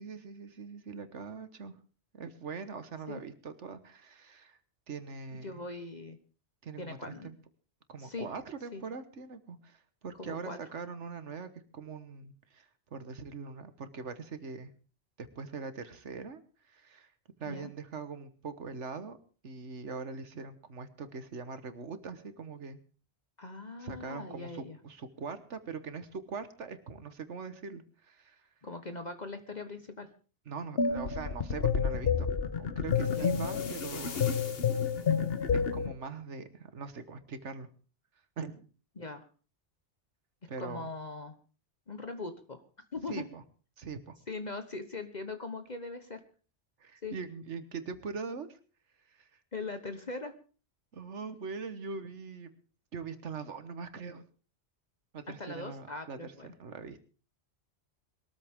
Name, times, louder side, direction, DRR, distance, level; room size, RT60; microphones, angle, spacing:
voice 1, 0.0-1.8 2.1-4.6 4.9-5.6 6.6-7.4 7.9-14.7 15.2-17.1 17.4-19.2 19.4-22.8 23.8-28.4 30.5-34.3 35.5-37.7 38.4-38.7 40.5-40.9 43.1-43.4 43.8-44.2 46.8-48.6 49.1-49.3 50.9-52.5 52.9-54.2 55.1-57.0, right 5 dB, 85° right, 11 dB, 1.6 m, -42 dB
voice 2, 5.3-6.2 6.8-7.3 8.0-8.3 8.7-8.8 10.2-10.6 17.4-17.7 23.4-24.8 28.6-30.1 33.1-33.3 39.0-39.3 40.6-41.4 41.9-42.6 42.9-43.2 44.3-46.2 47.0-47.1 49.5-50.3 55.4-56.5, left 3 dB, 40° left, 8 dB, 1.2 m, -40 dB
sound 1, 30.8-35.9, left 6 dB, 60° left, 1.3 m, -29 dB
22.0 x 13.5 x 3.6 m, 0.37 s
omnidirectional pair, 1.2 m